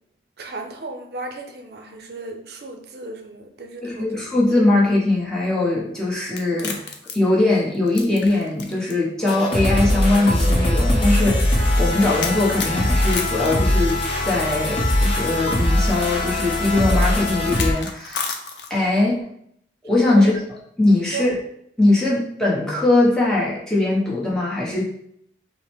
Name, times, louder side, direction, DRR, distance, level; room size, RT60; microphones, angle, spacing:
voice 1, 0.4-4.2 20.2-20.3 21.1-21.3, right 3 dB, 60° right, 4 dB, 0.6 m, -34 dB
voice 2, 3.8-6.9 7.1-18.3 18.7-19.3 19.8-20.4 20.8-21.3 21.8-24.8, left 2 dB, 5° left, -6 dB, 1.0 m, -20 dB
sound 1, 6.3-8.9 9.3-9.4 10.3-10.4 12.2-14.3 15.5-15.6 17.4-18.9, left 5 dB, 80° left, 0.6 m, -31 dB
sound 2, 9.3-17.7, left 1 dB, 30° left, 0.8 m, -21 dB
5.6 x 2.1 x 3.4 m, 0.70 s
head